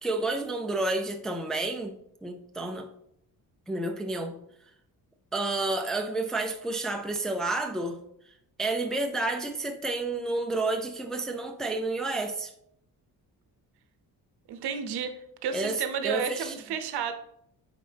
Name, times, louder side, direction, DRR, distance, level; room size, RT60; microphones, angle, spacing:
voice 1, 0.0-2.9 3.7-4.4 5.3-8.0 8.6-12.5 15.5-16.5, right 2 dB, ahead, 0.3 m, -30 dB
voice 2, 14.5-17.1, right 7 dB, 85° right, 0.8 m, -32 dB
9.1 x 3.8 x 3.4 m
wide cardioid pair, 170°, 38 cm